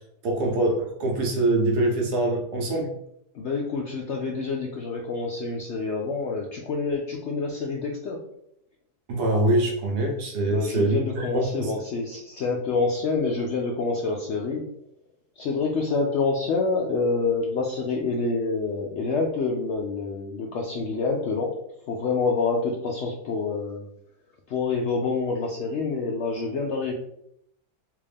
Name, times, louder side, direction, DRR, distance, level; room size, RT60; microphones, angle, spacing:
voice 1, 0.2-2.9 9.1-11.7, right 1 dB, 80° right, 1 dB, 1.4 m, -24 dB
voice 2, 3.3-8.3 10.5-14.7 15.4-23.9 24.5-26.9, left 4 dB, 75° left, 0 dB, 0.6 m, -27 dB
3.5 x 2.5 x 3.4 m, 0.75 s
omnidirectional pair, 1.7 m